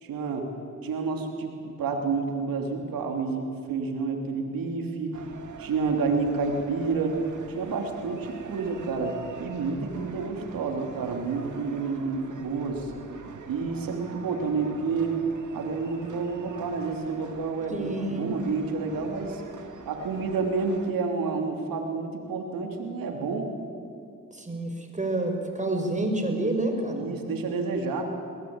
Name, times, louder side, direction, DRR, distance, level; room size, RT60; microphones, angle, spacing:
voice 1, 0.0-5.1 5.6-7.2 7.5-12.9 13.5-15.2 15.5-19.4 19.8-23.5 26.9-28.0, right 4 dB, 80° right, 3 dB, 3.0 m, -29 dB
sound 1, 5.1-20.9, right 4 dB, 60° right, 2.6 m, -44 dB
voice 2, 17.7-18.3 24.3-27.1, right 2 dB, 20° right, 4 dB, 5.1 m, -28 dB
21.5 x 19.5 x 8.8 m, 2.6 s
supercardioid pair, 55°, 34 cm